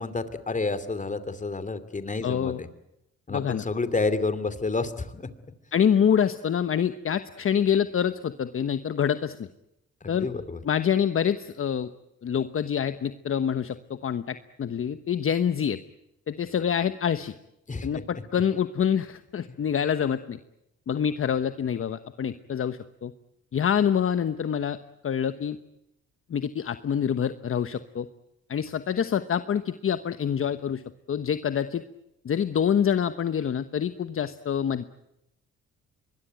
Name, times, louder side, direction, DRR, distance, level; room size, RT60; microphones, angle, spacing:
voice 1, 0.0-2.7 3.3-5.3 10.0-10.6 17.7-18.0, left 3 dB, 25° left, 13 dB, 2.7 m, -30 dB
voice 2, 2.2-2.6 3.3-3.6 5.7-9.5 10.1-10.3 10.6-11.9 12.2-15.8 16.3-17.3 17.8-20.4 20.9-23.1 23.5-24.8 25.0-25.6 26.3-28.1 28.5-30.8 31.1-31.8 32.2-34.8, left 8 dB, 45° left, 11 dB, 1.1 m, -26 dB
24.5 x 21.0 x 9.2 m, 0.84 s
cardioid pair, 90°, 30 cm